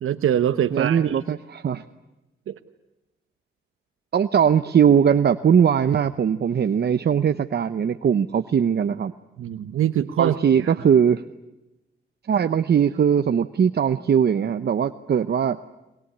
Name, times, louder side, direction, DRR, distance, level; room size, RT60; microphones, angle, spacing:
voice 1, 0.0-1.2 2.5-2.6 9.4-10.8, right 10 dB, 85° right, 8 dB, 1.0 m, -24 dB
voice 2, 0.7-1.8 4.1-9.1 10.2-11.2 12.3-15.6, right 8 dB, 50° right, 11 dB, 0.8 m, -20 dB
22.5 x 21.5 x 9.8 m, 0.98 s
cardioid pair, 100°, 21 cm